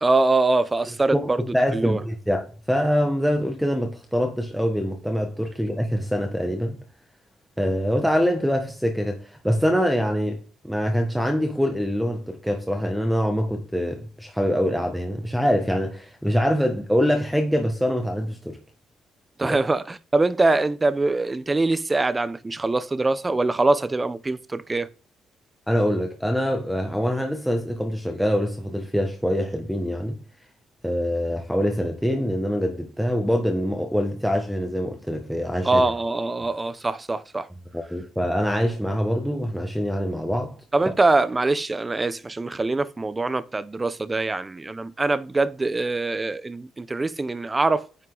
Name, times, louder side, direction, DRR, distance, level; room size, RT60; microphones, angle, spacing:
voice 1, 0.0-2.0 19.4-24.9 35.6-37.5 40.7-47.9, right 2 dB, 20° right, 0.8 m, -23 dB
voice 2, 1.5-6.8 7.6-10.4 10.6-18.6 19.4-19.6 25.7-30.1 30.8-35.8 37.7-40.5, equal, ahead, 1.5 m, -24 dB
9.7 x 5.5 x 3.9 m
cardioid pair, 90°, 0 cm